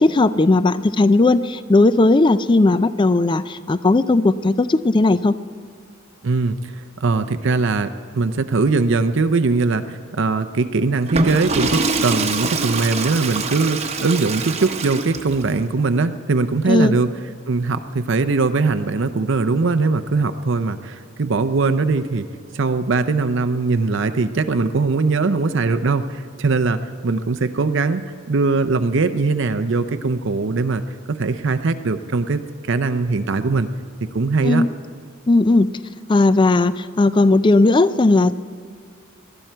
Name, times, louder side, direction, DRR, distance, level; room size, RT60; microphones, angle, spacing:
voice 1, 0.0-5.4 16.7-17.0 34.4-34.7 35.3-35.7 36.1-38.3, left 2 dB, 20° left, 15 dB, 0.4 m, -16 dB
voice 2, 6.2-17.1 17.5-22.2 22.5-28.0 28.3-30.8 31.1-33.7 34.0-34.6, right 3 dB, 60° right, 9 dB, 0.6 m, -21 dB
Water / Toilet flush, 11.0-15.5, right 3 dB, 30° right, 0.9 m, -24 dB
19.5 x 12.5 x 4.5 m, 2.1 s
head